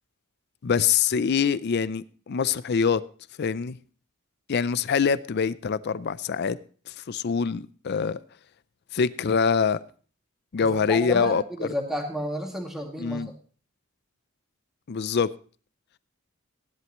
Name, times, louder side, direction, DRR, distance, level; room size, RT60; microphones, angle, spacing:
voice 1, 0.6-3.0 3.4-3.8 4.5-6.6 6.9-8.2 8.9-9.8 10.5-11.7 13.0-13.3 14.9-15.3, left 6 dB, 50° left, 0.4 m, -24 dB
voice 2, 10.6-13.3, equal, ahead, 2.2 m, -32 dB
16.0 x 11.0 x 3.0 m
head